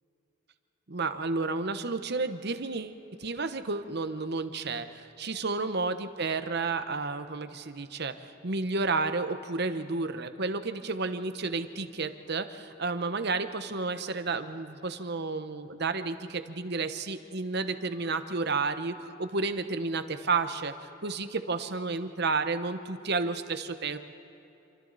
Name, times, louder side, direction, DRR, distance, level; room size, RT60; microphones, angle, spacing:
voice 1, 0.9-20.7 21.0-24.0, right 3 dB, 55° right, 10 dB, 1.1 m, -31 dB
28.0 x 24.5 x 4.2 m, 2.9 s
head